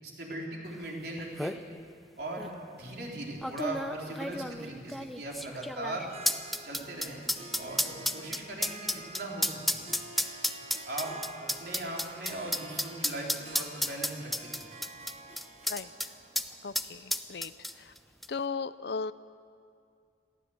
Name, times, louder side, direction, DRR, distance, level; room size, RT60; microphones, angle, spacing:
voice 1, 0.0-1.6 2.2-6.1 6.6-7.2 7.5-9.8 10.9-11.1 11.4-14.7, right 2 dB, 60° right, -2 dB, 3.8 m, -39 dB
sound 1, 0.9-1.0 1.2-1.6 2.4-2.5 3.4-16.1 16.4-16.5 16.7-18.0 18.2-18.3, equal, ahead, 0.5 m, -32 dB
Harp, 6.1-17.9, right 3 dB, 35° right, 1.5 m, -49 dB
voice 2, 15.7-16.1 16.6-17.9 18.3-19.1, left 5 dB, 65° left, 15 dB, 0.5 m, -37 dB
22.0 x 15.5 x 7.9 m, 2.3 s
head